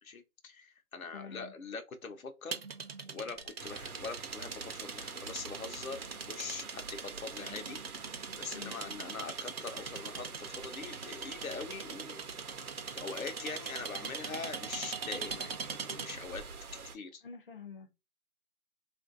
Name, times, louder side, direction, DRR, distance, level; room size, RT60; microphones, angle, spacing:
voice 1, 0.0-2.6 3.1-6.0 6.3-7.9 8.4-12.3 12.9-16.4 16.9-17.2, left 4 dB, 70° left, 0.8 m, -43 dB
voice 2, 1.1-1.5 8.5-9.1 17.2-17.9, left 5 dB, 40° left, 0.5 m, -48 dB
sound 1, 2.5-16.3, right 5 dB, 45° right, 0.5 m, -42 dB
sound 2, 3.6-17.0, right 5 dB, 90° right, 0.8 m, -47 dB
3.1 x 2.5 x 2.4 m
hypercardioid pair, 160°, 43 cm